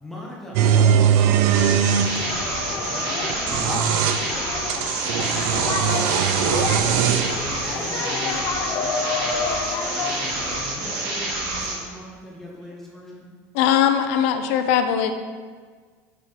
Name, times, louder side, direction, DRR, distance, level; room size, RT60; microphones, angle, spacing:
voice 1, 0.0-1.1 2.4-3.9 5.2-13.3, left 1 dB, 5° left, -4 dB, 1.0 m, -39 dB
sound 1, 0.5-2.1 3.3-4.2 4.7-7.4, right 9 dB, 75° right, 0.4 m, -20 dB
voice 2, 0.7-2.3 3.4-4.2, right 1 dB, 35° right, -8 dB, 1.5 m, -34 dB
sound 2, 1.5-11.8, right 2 dB, 55° right, 1.9 m, -28 dB
sound 3, 1.8-10.6, left 5 dB, 40° left, 0.5 m, -30 dB
voice 3, 13.5-15.1, left 9 dB, 80° left, 8 dB, 0.6 m, -20 dB
6.3 x 4.7 x 4.4 m, 1.5 s
cardioid pair, 170°, 8 cm